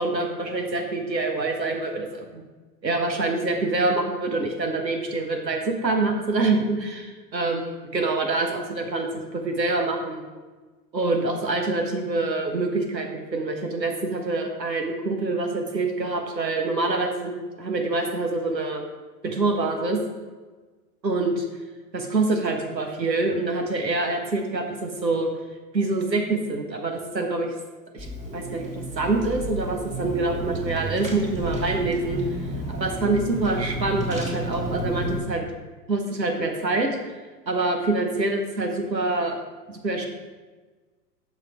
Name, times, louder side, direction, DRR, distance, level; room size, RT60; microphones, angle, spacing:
voice 1, 0.0-2.4 2.8-10.2 10.9-18.8 19.2-20.0 21.0-21.4 21.9-25.3 25.7-27.5 27.9-28.1 28.3-32.2 32.7-35.4 35.9-37.1 37.5-39.4 39.7-40.1, right 2 dB, 90° right, 3 dB, 1.4 m, -26 dB
Car / Engine, 28.0-35.2, right 1 dB, 15° right, 1.6 m, -31 dB
7.6 x 5.7 x 4.4 m, 1.3 s
figure-of-eight pair, 100°, 49 cm